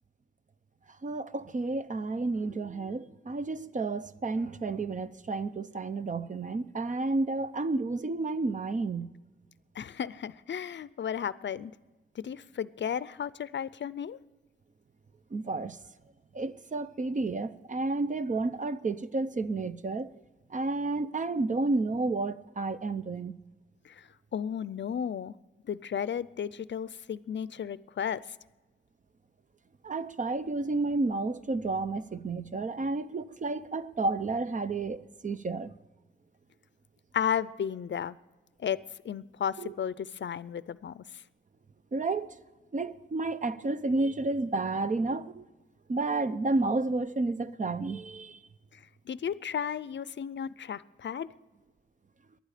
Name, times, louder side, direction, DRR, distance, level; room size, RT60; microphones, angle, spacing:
voice 1, 1.0-9.1 15.3-15.8 16.3-20.1 20.5-23.3 29.8-35.7 39.6-39.7 41.9-42.3 42.7-45.4 45.9-48.4, right 3 dB, 40° right, 0.6 m, -31 dB
voice 2, 9.8-11.7 12.2-14.2 23.9-24.0 24.3-25.3 25.6-28.2 37.1-38.2 38.6-41.0 49.1-51.3, left 8 dB, 60° left, 0.5 m, -34 dB
19.0 x 11.5 x 5.0 m
wide cardioid pair, 120°, 21 cm